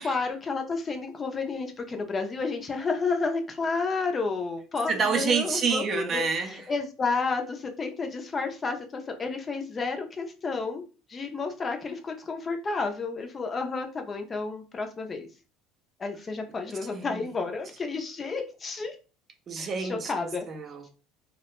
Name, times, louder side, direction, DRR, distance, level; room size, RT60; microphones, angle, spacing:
voice 1, 0.0-10.8 11.1-15.3 16.0-19.0 19.6-20.4, left 4 dB, 25° left, 0.4 m, -31 dB
voice 2, 4.9-6.6 16.9-17.4 19.5-20.9, right 5 dB, 35° right, 0.4 m, -29 dB
2.3 x 2.1 x 2.9 m
supercardioid pair, 115°, 0 cm